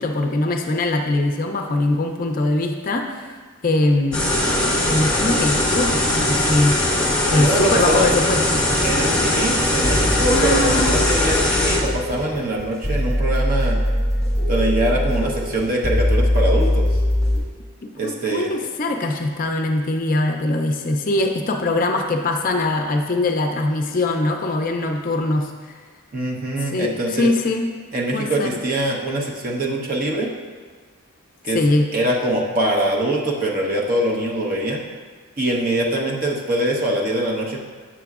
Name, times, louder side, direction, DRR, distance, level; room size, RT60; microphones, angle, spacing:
voice 1, 0.0-3.3 3.6-4.3 4.8-6.9 7.3-8.6 10.3-11.0 17.8-25.7 26.6-27.7 28.1-28.5 31.5-31.9, left 2 dB, 40° left, 4 dB, 0.4 m, -22 dB
sound 1, 4.1-11.8, left 1 dB, 5° left, 1.4 m, -20 dB
voice 2, 7.4-8.1 8.8-13.8 14.5-16.8 18.0-18.5 26.1-27.3 27.9-30.3 31.4-31.6 31.9-34.8 35.4-37.6, right 1 dB, 40° right, -2 dB, 0.8 m, -23 dB
sound 2, 8.7-17.4, left 1 dB, 15° right, 1.4 m, -22 dB
7.3 x 6.8 x 2.4 m, 1.5 s
head